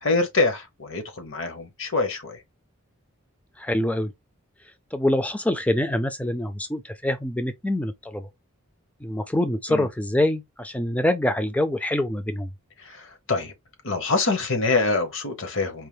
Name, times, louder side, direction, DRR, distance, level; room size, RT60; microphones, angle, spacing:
voice 1, 0.0-2.4 9.7-9.9 12.8-13.5 13.8-15.9, left 3 dB, 60° left, 1.0 m, -25 dB
voice 2, 3.6-4.1 4.9-8.3 9.0-12.5, left 1 dB, 5° left, 0.4 m, -25 dB
4.5 x 2.0 x 3.3 m
head